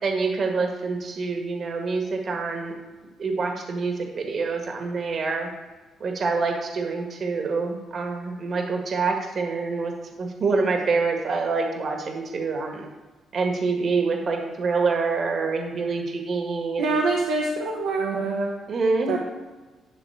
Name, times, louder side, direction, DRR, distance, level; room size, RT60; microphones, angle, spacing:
voice 1, 0.0-2.7 3.2-5.5 6.0-9.9 10.2-12.9 13.3-17.0 18.7-19.2, right 4 dB, 50° right, 2 dB, 1.6 m, -26 dB
voice 2, 16.8-18.5 19.1-19.2, right 3 dB, 90° right, -2 dB, 1.2 m, -25 dB
11.0 x 3.7 x 7.2 m, 1.3 s
cardioid pair, 90°, 0 cm